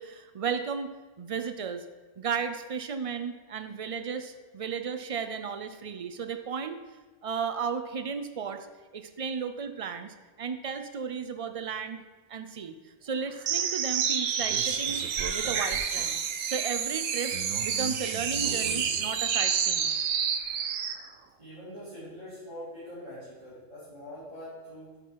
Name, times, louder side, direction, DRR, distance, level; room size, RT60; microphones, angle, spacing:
voice 1, 0.0-1.8 2.2-6.8 7.2-8.7 8.9-12.0 12.3-12.7 13.0-16.2 16.5-17.3 17.6-19.9, right 6 dB, 60° right, 8 dB, 0.3 m, -34 dB
sound 1, 13.4-21.0, right 7 dB, 80° right, 1.1 m, -29 dB
voice 2, 21.4-25.0, equal, 30° right, -13 dB, 3.7 m, -43 dB
9.7 x 6.6 x 4.6 m, 1.3 s
omnidirectional pair, 1.3 m